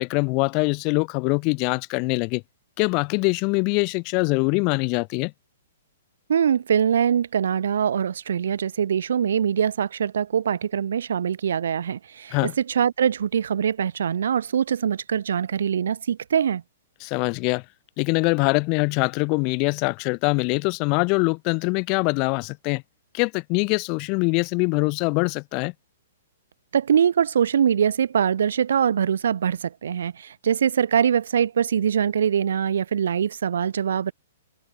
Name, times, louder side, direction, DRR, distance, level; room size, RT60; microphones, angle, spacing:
voice 1, 0.0-2.4 2.8-5.3 12.3-12.5 17.0-17.6 18.0-22.8 23.1-25.7, left 33 dB, 30° left, 2.1 m, -23 dB
voice 2, 6.3-16.6 26.7-34.1, right 8 dB, 75° right, 1.8 m, -23 dB
hypercardioid pair, 155°, 0 cm